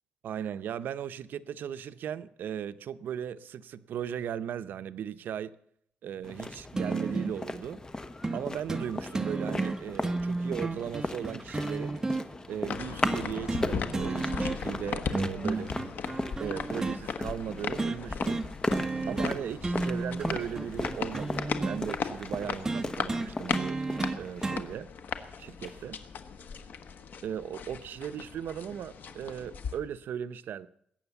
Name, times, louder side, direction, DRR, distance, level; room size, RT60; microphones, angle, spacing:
voice 1, 0.2-5.5 6.0-7.8 8.3-12.0 12.5-15.7 16.4-18.5 19.1-23.8 24.2-24.9 25.4-26.0 27.2-30.7, right 9 dB, 85° right, 0.7 m, -37 dB
sound 1, 6.2-24.8, left 2 dB, 20° left, 1.1 m, -38 dB
sound 2, 6.8-7.4 8.2-8.4 8.7-8.9 9.1-12.2 13.0-13.7 13.9-14.8 15.1-17.0 17.8-18.0 18.3-18.5 18.7-19.4 19.6-21.8 22.6-24.6 25.7-25.8, right 3 dB, 20° right, 1.2 m, -32 dB
sound 3, 12.7-29.8, left 6 dB, 70° left, 1.4 m, -38 dB
21.0 x 8.9 x 7.0 m
cardioid pair, 115°, 3 cm